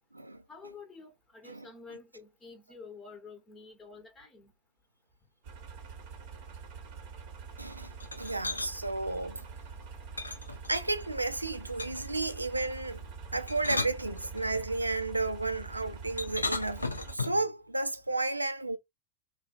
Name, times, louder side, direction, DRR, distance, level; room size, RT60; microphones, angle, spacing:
voice 1, 0.5-4.5, left 4 dB, 15° left, 0.8 m, -49 dB
sound 1, 5.4-17.1, right 5 dB, 50° right, 1.0 m, -45 dB
voice 2, 7.6-9.5 10.7-13.0 13.3-18.8, right 2 dB, 85° right, 0.3 m, -33 dB
sound 2, 8.0-8.7 10.2-11.1 11.8-12.2 13.3-14.7 16.2-17.5, left 3 dB, 80° left, 0.4 m, -36 dB
3.2 x 2.4 x 2.2 m
figure-of-eight pair, 90°, 0 cm